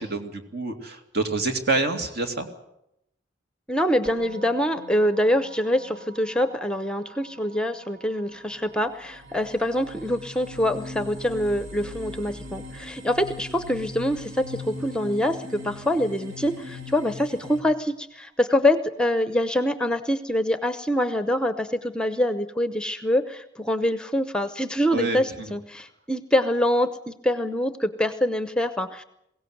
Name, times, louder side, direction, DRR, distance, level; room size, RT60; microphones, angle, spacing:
voice 1, 0.0-2.5 24.9-25.5, right 3 dB, 55° right, 5 dB, 2.6 m, -27 dB
voice 2, 3.7-29.0, left 1 dB, 5° left, 11 dB, 0.8 m, -25 dB
Musical instrument, 4.0-15.2, equal, 40° right, 4.5 m, -49 dB
sound 1, 8.6-8.7 9.1-17.6, left 2 dB, 85° right, 2.6 m, -40 dB
21.5 x 17.0 x 7.9 m, 0.79 s
head